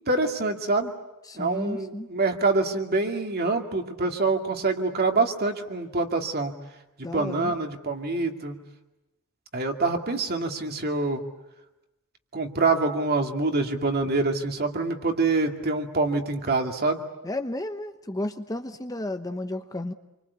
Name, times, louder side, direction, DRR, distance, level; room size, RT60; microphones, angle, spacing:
voice 1, 0.1-0.9 1.4-6.5 7.0-8.6 9.5-11.2 12.3-17.0, right 3 dB, 45° right, 4 dB, 2.4 m, -25 dB
voice 2, 1.3-2.1 7.0-7.5 17.2-19.9, left 1 dB, 15° left, 7 dB, 1.0 m, -33 dB
28.5 x 24.5 x 8.3 m, 0.98 s
head